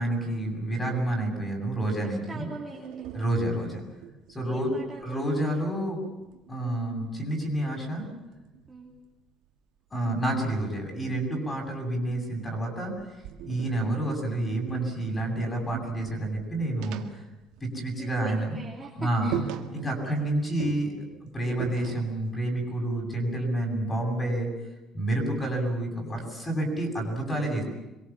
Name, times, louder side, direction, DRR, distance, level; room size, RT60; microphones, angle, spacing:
voice 1, 0.0-2.5 3.1-3.8 4.3-4.7 5.0-6.0 6.5-8.1 9.9-13.2 13.4-17.2 17.6-18.6 19.0-19.3 19.7-20.9 21.2-24.5 24.9-27.6, right 1 dB, 15° left, 2 dB, 7.6 m, -29 dB
voice 2, 2.0-3.3 4.4-5.3 8.7-8.9 13.5-13.8 18.0-19.4 19.8-20.2 22.9-23.1, right 2 dB, 15° right, -3 dB, 3.1 m, -43 dB
sound 1, 2.7-5.8 6.1-9.1 10.4-12.4 12.8-18.2 18.4-18.6 19.0-19.1 19.3-20.2 20.6-22.3, right 11 dB, 90° right, 1.9 m, -41 dB
26.0 x 23.0 x 7.5 m, 1.0 s
cardioid pair, 150°, 0 cm